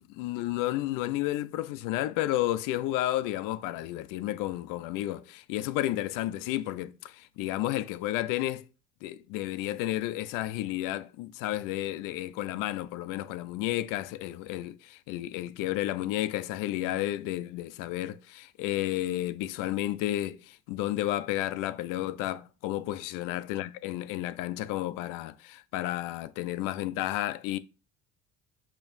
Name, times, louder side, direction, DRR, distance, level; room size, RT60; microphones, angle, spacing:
voice 1, 0.2-8.6 9.0-27.6, left 15 dB, 75° left, 0.5 m, -32 dB
7.0 x 3.0 x 2.5 m
cardioid pair, 125°, 33 cm